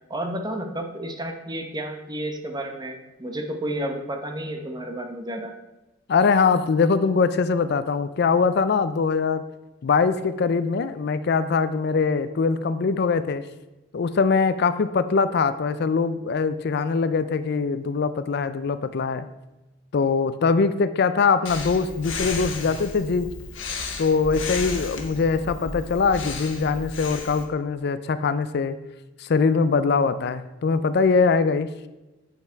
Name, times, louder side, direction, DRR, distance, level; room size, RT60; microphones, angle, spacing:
voice 1, 0.1-5.5, right 1 dB, 20° right, 4 dB, 1.0 m, -31 dB
voice 2, 6.1-9.4 9.8-13.4 13.9-19.3 19.9-23.3 24.0-28.8 29.2-31.7, left 5 dB, 55° left, 12 dB, 0.4 m, -22 dB
Breathing, 21.4-27.4, left 4 dB, 75° left, 1.3 m, -34 dB
8.8 x 5.7 x 4.5 m, 1.0 s
head